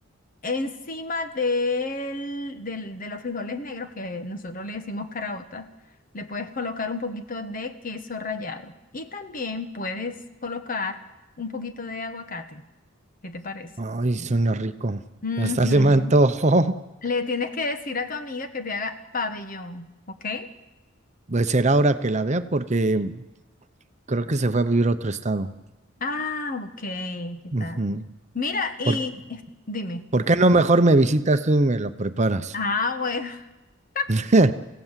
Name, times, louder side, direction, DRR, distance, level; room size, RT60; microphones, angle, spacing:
voice 1, 0.4-5.7 6.1-11.0 11.4-12.6 13.2-13.7 15.2-16.1 17.0-20.5 26.0-27.8 28.3-29.4 29.7-30.1 32.5-33.5 33.9-34.1, left 3 dB, 45° left, 9 dB, 1.3 m, -30 dB
voice 2, 13.8-15.0 15.4-16.8 21.3-23.2 24.1-25.5 27.5-28.0 28.9-29.0 30.1-32.5 34.1-34.5, right 2 dB, 35° right, 10 dB, 0.8 m, -21 dB
29.0 x 16.0 x 7.5 m, 1.1 s
head